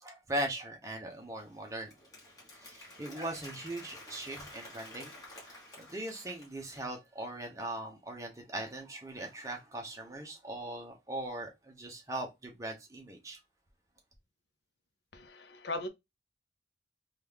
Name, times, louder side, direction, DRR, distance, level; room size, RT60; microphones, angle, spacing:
voice 1, 0.0-1.9 2.6-5.1 5.5-13.4, right 1 dB, 15° right, 0.8 m, -40 dB
Applause, 1.1-6.9, left 1 dB, 20° left, 1.2 m, -51 dB
voice 2, 15.1-15.9, left 2 dB, 70° left, 0.5 m, -38 dB
3.0 x 2.4 x 3.4 m
head